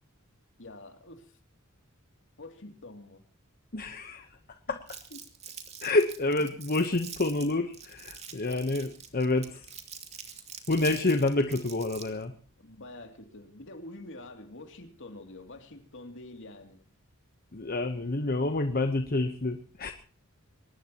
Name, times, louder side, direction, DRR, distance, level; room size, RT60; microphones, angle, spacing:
voice 1, 0.6-1.4 2.4-3.2 4.7-4.8 5.1-5.3 8.4-8.7 12.6-16.8, left 2 dB, 60° left, 5 dB, 2.8 m, -46 dB
voice 2, 3.7-4.3 5.8-9.7 10.7-12.3 17.5-19.9, left 2 dB, 45° left, 7 dB, 1.0 m, -28 dB
Crumpling crinkling, 4.9-12.2, right 7 dB, 30° right, 2.7 m, -45 dB
23.5 x 19.5 x 3.0 m, 0.43 s
head